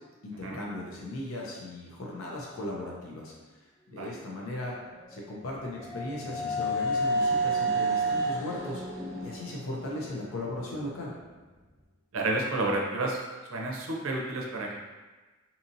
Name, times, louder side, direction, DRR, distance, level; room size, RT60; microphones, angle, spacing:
voice 1, 0.2-3.3 3.9-4.7 5.1-8.8 9.2-11.1, left 1 dB, 80° left, -3 dB, 0.5 m, -37 dB
sound 1, 4.9-10.8, right 2 dB, 10° left, 0.4 m, -30 dB
voice 2, 12.1-13.2 13.5-14.8, right 2 dB, 75° right, -1 dB, 0.5 m, -30 dB
2.7 x 2.6 x 2.6 m, 1.2 s
head